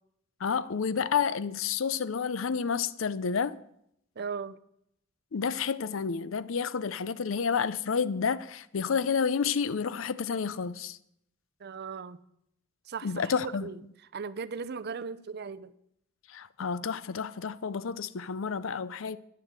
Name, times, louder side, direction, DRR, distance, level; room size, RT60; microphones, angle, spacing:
voice 1, 0.4-3.6 5.3-11.0 13.0-13.7 16.3-19.2, left 6 dB, 70° left, 0.5 m, -30 dB
voice 2, 4.2-4.6 11.6-12.2 12.9-13.8 14.1-15.7, right 5 dB, 55° right, 0.5 m, -37 dB
9.9 x 7.3 x 8.1 m
head